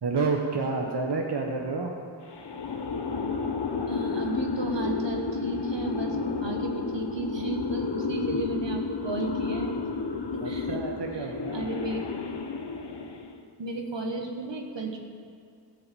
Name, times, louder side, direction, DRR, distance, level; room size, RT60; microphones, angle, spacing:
voice 1, 0.0-1.9 8.3-8.4 10.4-11.7, right 4 dB, 65° right, 1 dB, 1.0 m, -29 dB
sound 1, 2.3-13.4, left 4 dB, 70° left, 0.9 m, -31 dB
voice 2, 3.9-9.8 10.3-10.8 11.5-12.0 12.3-12.4 13.6-15.0, right 2 dB, 80° right, 2 dB, 1.3 m, -33 dB
14.5 x 5.6 x 6.8 m, 2.3 s
wide cardioid pair, 45°, 43 cm